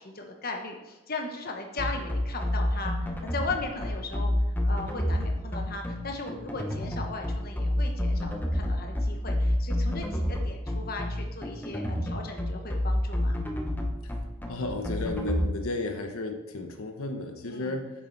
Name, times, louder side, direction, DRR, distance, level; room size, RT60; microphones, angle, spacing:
voice 1, 0.0-4.3 4.6-13.4 17.5-17.8, left 3 dB, 45° left, 3 dB, 1.1 m, -37 dB
sound 1, 1.8-15.5, left 1 dB, 10° left, 0.8 m, -28 dB
voice 2, 14.5-17.9, left 2 dB, 90° left, 5 dB, 1.1 m, -33 dB
9.1 x 7.3 x 4.1 m, 1.1 s
head